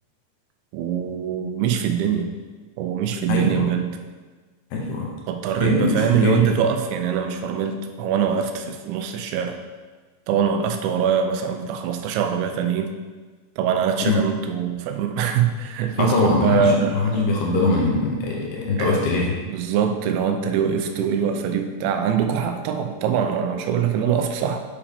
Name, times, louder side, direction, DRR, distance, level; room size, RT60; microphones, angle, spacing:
voice 1, 0.7-2.3 2.8-4.0 5.3-9.6 10.3-12.9 13.6-17.3 18.8-19.1 19.5-24.6, right 7 dB, 90° right, 5 dB, 3.0 m, -23 dB
voice 2, 3.3-3.6 4.7-5.1 5.6-6.5 14.0-14.2 15.9-19.3, left 3 dB, 75° left, -2 dB, 2.7 m, -22 dB
8.3 x 4.9 x 3.4 m, 1.4 s
omnidirectional pair, 5.1 m